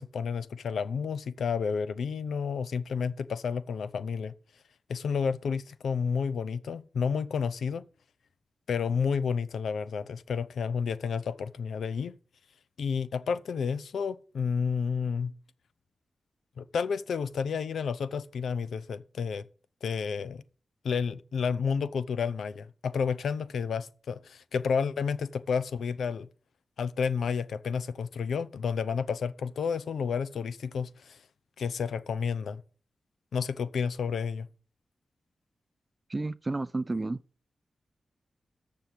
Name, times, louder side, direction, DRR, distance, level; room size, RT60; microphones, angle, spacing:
voice 1, 0.0-4.3 4.9-7.8 8.7-12.1 12.8-15.3 16.6-19.5 19.8-20.4 20.8-26.3 26.8-31.2 31.6-32.6 33.3-34.5, left 6 dB, 85° left, 0.6 m, -31 dB
voice 2, 36.1-37.2, right 2 dB, 35° right, 0.4 m, -31 dB
7.0 x 6.8 x 7.7 m
cardioid pair, 55°, 0 cm